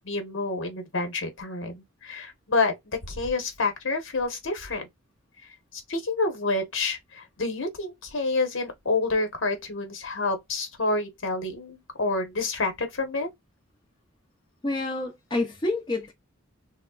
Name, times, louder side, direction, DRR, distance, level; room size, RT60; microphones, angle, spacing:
voice 1, 0.0-4.9 5.7-13.3, left 3 dB, 65° left, 1.1 m, -28 dB
voice 2, 14.6-16.1, left 2 dB, 20° left, 0.6 m, -28 dB
3.4 x 2.1 x 2.3 m
head